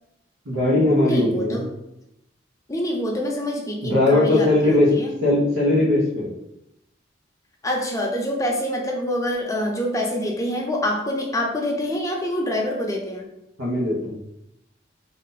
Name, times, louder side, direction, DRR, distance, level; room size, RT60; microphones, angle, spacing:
voice 1, 0.4-1.7 3.8-4.9 5.2-6.3 13.6-14.2, left 1 dB, 85° right, -6 dB, 1.2 m, -19 dB
voice 2, 1.0-1.7 2.7-5.2 7.6-13.3, left 1 dB, 15° left, 0 dB, 0.6 m, -26 dB
4.0 x 2.8 x 3.8 m, 0.85 s
head